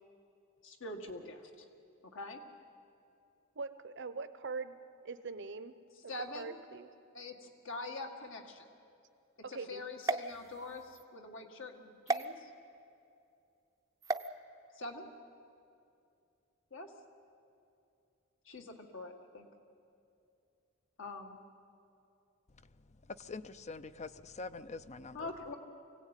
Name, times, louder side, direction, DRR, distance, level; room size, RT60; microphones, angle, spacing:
voice 1, 0.6-1.7 2.1-2.4 6.1-6.6 7.1-8.7 9.5-12.5 14.7-15.1 16.7-16.9 18.5-19.5 21.0-21.4 25.1-25.5, left 2 dB, 65° left, 2.0 m, -44 dB
voice 2, 3.6-4.8 5.0-5.8 6.3-6.9 9.4-9.8, right 4 dB, 60° right, 0.8 m, -42 dB
sound 1, 10.0-11.0 12.1-12.2 14.0-14.3, right 3 dB, 15° right, 0.6 m, -35 dB
voice 3, 23.1-25.3, left 3 dB, 35° left, 0.6 m, -44 dB
25.0 x 17.0 x 9.1 m
head